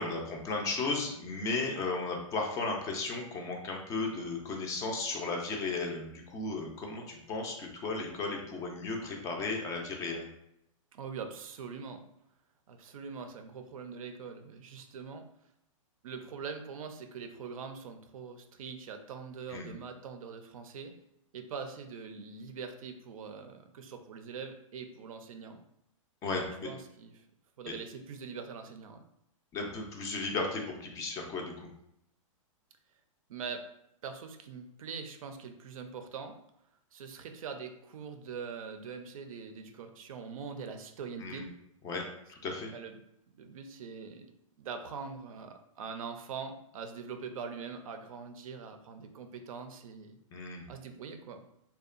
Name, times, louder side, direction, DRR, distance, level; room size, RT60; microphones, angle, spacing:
voice 1, 0.0-10.3 19.5-19.7 26.2-26.7 27.7-27.8 29.5-31.5 41.2-41.5 41.8-42.0 42.3-42.7 50.3-50.6, left 3 dB, 20° left, 1 dB, 0.3 m, -35 dB
voice 2, 10.9-12.0 12.7-15.3 16.0-20.9 21.3-25.6 26.4-27.2 27.6-29.0 33.3-33.6 34.0-36.4 36.9-41.5 42.7-43.0 43.3-44.3 44.6-50.2 50.7-51.4, right 5 dB, 80° right, 7 dB, 0.4 m, -43 dB
2.7 x 2.2 x 2.4 m, 0.79 s
hypercardioid pair, 140°, 17 cm